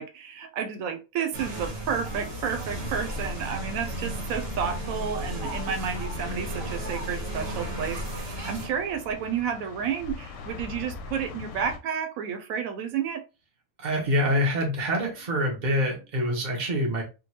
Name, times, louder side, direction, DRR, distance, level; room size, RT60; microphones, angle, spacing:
voice 1, 0.0-13.2, right 7 dB, 85° right, 1.0 m, -31 dB
sound 1, 1.3-8.7, right 1 dB, 50° right, 1.4 m, -35 dB
sound 2, 2.1-11.8, left 4 dB, 70° left, 0.9 m, -42 dB
sound 3, 2.8-8.2, equal, 55° left, 0.4 m, -38 dB
voice 2, 13.8-17.0, equal, 35° right, 1.1 m, -25 dB
3.7 x 2.3 x 2.8 m
omnidirectional pair, 1.4 m